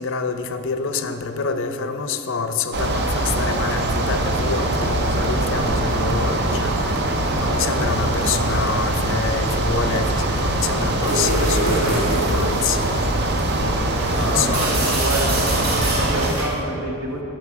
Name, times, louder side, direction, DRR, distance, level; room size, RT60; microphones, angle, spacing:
voice 1, 0.0-7.0 7.3-12.8 13.5-14.7, left 5 dB, 55° left, 8 dB, 0.5 m, -27 dB
sound 1, 2.7-16.3, right 1 dB, 50° right, 0.6 m, -22 dB
sound 2, 3.6-11.9, right 1 dB, 15° right, 0.3 m, -35 dB
voice 2, 7.2-8.0 14.1-15.3 15.7-17.2, right 1 dB, 90° right, 0 dB, 1.4 m, -28 dB
sound 3, 11.0-16.6, right 1 dB, 65° right, 1.6 m, -26 dB
9.6 x 6.6 x 4.6 m, 2.9 s
head